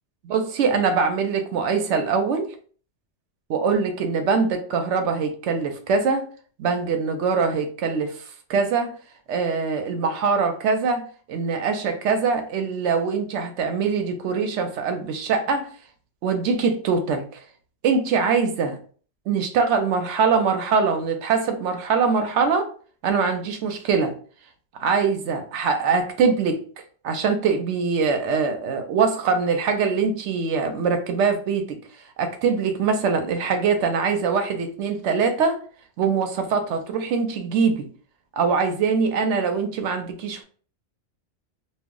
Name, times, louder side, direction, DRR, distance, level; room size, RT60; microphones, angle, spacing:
voice 1, 0.2-2.5 3.5-6.3 6.6-8.2 8.5-8.9 9.3-11.0 11.3-15.7 16.2-17.4 17.8-18.8 19.3-22.7 23.0-24.1 24.8-26.7 27.0-31.8 32.2-35.6 36.0-37.9 38.3-40.4, right 5 dB, 85° right, 7 dB, 0.9 m, -23 dB
2.3 x 2.0 x 3.6 m, 0.43 s
omnidirectional pair, 1.2 m